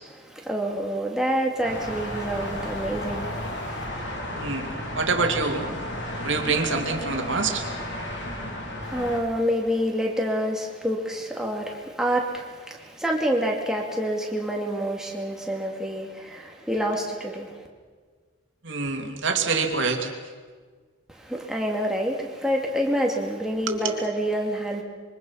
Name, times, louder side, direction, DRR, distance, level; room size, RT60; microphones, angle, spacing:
voice 1, 0.2-3.8 8.8-17.6 21.1-24.8, equal, 5° right, -1 dB, 2.5 m, -27 dB
sound 1, 1.6-9.2, left 1 dB, 65° left, 4.0 m, -33 dB
voice 2, 4.3-5.7 6.2-7.6 18.6-20.1 23.7-24.0, right 4 dB, 75° right, 4 dB, 2.6 m, -26 dB
26.0 x 23.5 x 5.8 m, 1.5 s
head